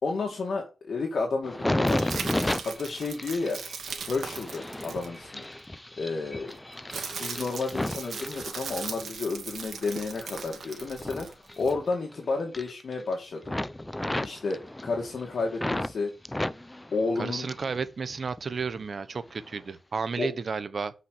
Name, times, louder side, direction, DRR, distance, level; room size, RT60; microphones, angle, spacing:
voice 1, 0.0-2.2 2.6-3.6 4.1-5.5 6.0-6.5 7.1-13.6 14.2-16.1 16.9-17.5 20.2-20.3, left 3 dB, 65° left, 2.4 m, -31 dB
sound 1, 1.4-9.1 9.6-12.2 12.4-13.1 13.4-15.9 16.3-17.8 18.1-18.8 19.4-19.6, left 1 dB, 15° left, 0.7 m, -33 dB
sound 2, 1.9-5.6 6.5-11.7, right 6 dB, 90° right, 2.6 m, -39 dB
voice 2, 17.2-20.9, right 5 dB, 55° right, 1.1 m, -32 dB
8.7 x 5.8 x 7.8 m
wide cardioid pair, 90°, 0 cm